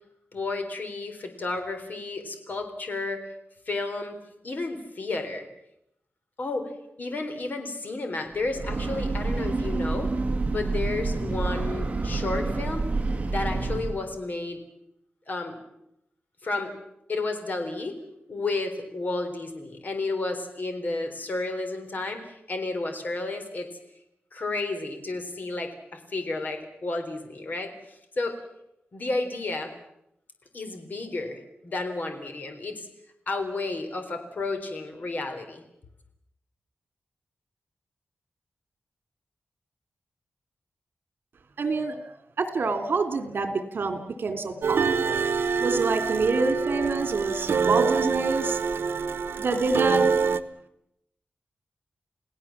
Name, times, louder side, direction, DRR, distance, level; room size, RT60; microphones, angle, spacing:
voice 1, 0.3-3.3 3.7-4.2 4.4-5.5 6.4-6.7 7.0-10.1 10.5-12.9 13.3-14.6 15.3-15.6 16.4-16.7 17.1-18.0 18.3-23.7 24.3-28.4 28.9-29.7 30.5-32.9 33.3-35.6, left 3 dB, 50° left, 6 dB, 3.9 m, -32 dB
Breathing / Train, 8.4-14.1, right 3 dB, 35° right, 2.0 m, -28 dB
voice 2, 41.6-42.0 42.4-45.2 45.6-48.6 49.4-50.0, right 3 dB, 65° right, 9 dB, 2.9 m, -27 dB
sound 1, 44.6-50.4, right 5 dB, 85° right, 1.0 m, -25 dB
29.5 x 17.5 x 7.3 m, 0.81 s
wide cardioid pair, 150°, 4 cm